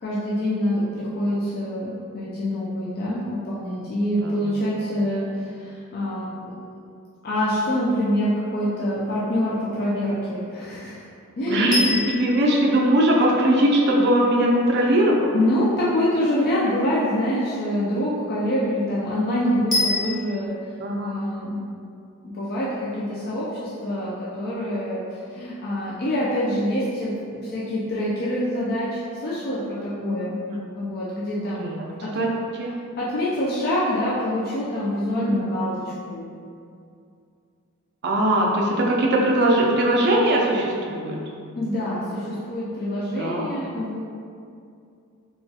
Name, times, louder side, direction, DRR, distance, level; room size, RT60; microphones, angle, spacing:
voice 1, 0.0-6.5 7.2-11.0 11.4-11.9 15.3-21.6 22.2-30.4 30.8-31.8 32.0-32.3 33.0-36.3 41.6-44.0, equal, 45° left, -7 dB, 0.4 m, -26 dB
voice 2, 11.5-15.3 20.8-21.2 30.0-30.2 30.5-30.6 31.6-31.8 32.1-32.3 32.6-32.7 35.1-35.4 38.0-41.2 43.2-43.5, right 1 dB, 50° right, -2 dB, 0.4 m, -20 dB
sound 1, 11.7-13.9 19.7-20.5, left 2 dB, ahead, 0.6 m, -28 dB
3.0 x 2.2 x 2.7 m, 2.4 s
head